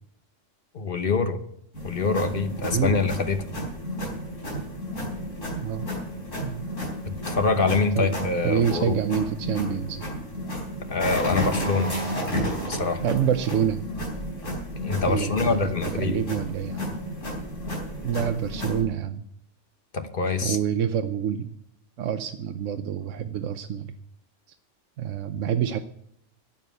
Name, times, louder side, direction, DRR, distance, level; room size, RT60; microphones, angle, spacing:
voice 1, 0.7-1.4 1.8-3.4 7.3-9.0 10.9-12.0 12.7-13.0 14.8-16.2 19.9-20.6, left 4 dB, 50° left, 9 dB, 1.2 m, -25 dB
sound 1, 1.7-18.8, equal, 80° left, 4.7 m, -32 dB
voice 2, 2.6-3.0 5.5-5.9 6.4-6.7 7.7-8.1 8.4-10.0 13.0-13.8 15.0-15.7 16.0-16.8 18.0-19.2 20.4-21.5 22.0-23.9 25.0-25.8, right 8 dB, 80° right, 8 dB, 1.1 m, -27 dB
11.0 x 7.5 x 9.5 m, 0.72 s
omnidirectional pair, 1.3 m